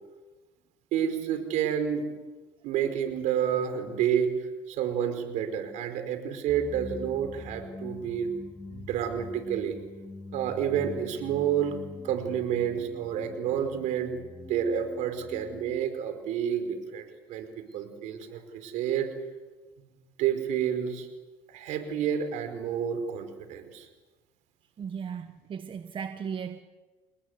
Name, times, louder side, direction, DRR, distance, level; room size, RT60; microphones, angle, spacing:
voice 1, 0.9-2.0 2.6-4.3 4.7-8.3 8.7-9.8 10.3-11.8 12.0-14.1 14.5-17.5 17.7-19.1 20.2-21.1 21.5-23.9, right 9 dB, 70° right, 8 dB, 4.9 m, -29 dB
sound 1, 6.5-15.8, left 3 dB, 10° left, 2.3 m, -44 dB
voice 2, 24.8-26.6, right 7 dB, 40° right, 9 dB, 1.4 m, -36 dB
30.0 x 20.0 x 8.2 m, 1.2 s
supercardioid pair, 80°, 13 cm